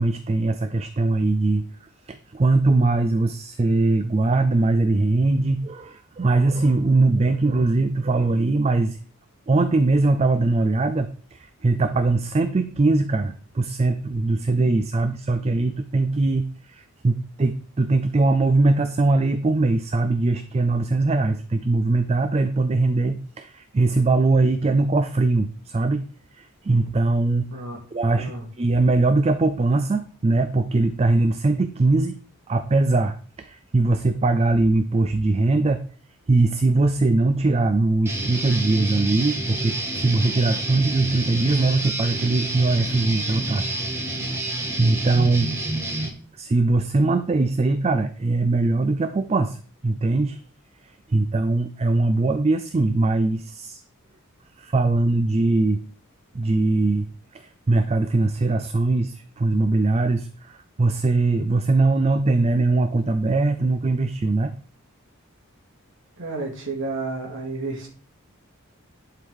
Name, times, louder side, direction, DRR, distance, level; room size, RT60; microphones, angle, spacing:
voice 1, 0.0-1.6 2.1-9.0 9.5-26.1 26.3-27.4 27.9-28.3 28.6-32.2 32.5-35.9 36.3-43.8 44.3-44.4 44.8-45.5 46.3-49.6 49.8-50.4 50.8-53.8 54.6-55.8 56.3-64.5, right 2 dB, 30° right, 10 dB, 0.4 m, -21 dB
voice 2, 28.0-28.5 66.2-67.9, right 3 dB, 55° right, 0 dB, 2.3 m, -31 dB
Guitar, 38.0-46.1, right 2 dB, 10° right, 1.0 m, -28 dB
11.0 x 4.7 x 3.6 m, 0.42 s
head